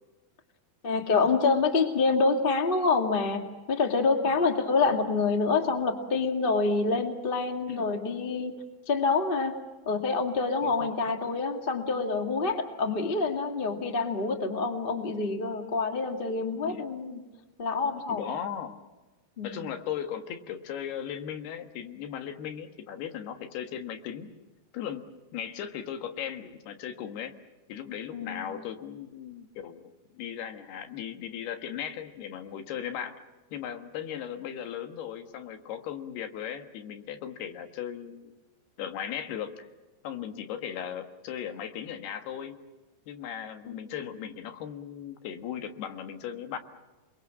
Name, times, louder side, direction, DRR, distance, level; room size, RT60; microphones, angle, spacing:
voice 1, 0.8-8.6 8.9-9.6 9.8-17.2 17.6-18.3 19.4-19.6 28.1-28.5 43.6-43.8, left 4 dB, 30° left, 5 dB, 1.0 m, -27 dB
voice 2, 10.6-11.0 16.7-16.8 18.1-18.8 19.4-24.3 24.7-25.1 25.3-27.3 27.7-33.2 33.5-38.4 38.8-39.7 40.0-42.6 43.1-46.6, left 9 dB, 75° left, 7 dB, 3.4 m, -37 dB
28.5 x 22.5 x 7.6 m, 1.2 s
omnidirectional pair, 4.8 m